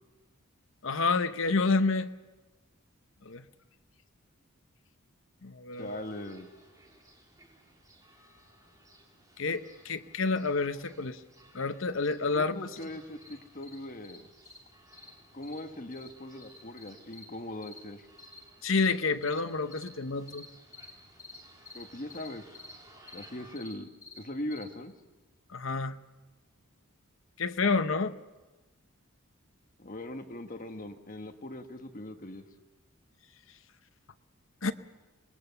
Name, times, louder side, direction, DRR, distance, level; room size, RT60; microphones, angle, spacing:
voice 1, 0.8-2.1 3.2-3.5 5.4-6.0 9.4-11.2 11.5-12.6 18.6-20.5 25.5-26.0 27.4-28.1 34.6-34.7, left 4 dB, 65° left, 10 dB, 0.9 m, -29 dB
sound 1, 5.7-23.6, right 1 dB, 15° right, 3.2 m, -59 dB
voice 2, 5.8-6.5 12.3-14.3 15.3-18.1 21.7-22.6 23.1-23.9 24.2-24.9 29.8-32.4, left 1 dB, 40° left, 6 dB, 1.3 m, -40 dB
sound 2, 12.3-12.4 12.7-12.8 13.2-13.3 13.6-13.8 14.0-14.2 14.4-14.6 14.9-15.1 15.4-15.6 15.9-16.1 16.4-17.2 17.6-17.8 18.2-18.4 18.7-18.9 19.2-19.4 19.7-19.9 20.3-20.5 20.7-20.9 21.2-21.4 21.6-21.8 22.1-22.3 22.5-22.7 23.1-23.3 23.5-23.7 24.0-24.2 24.5-24.6, left 4 dB, 15° left, 4.2 m, -48 dB
26.5 x 20.0 x 6.9 m, 1.2 s
head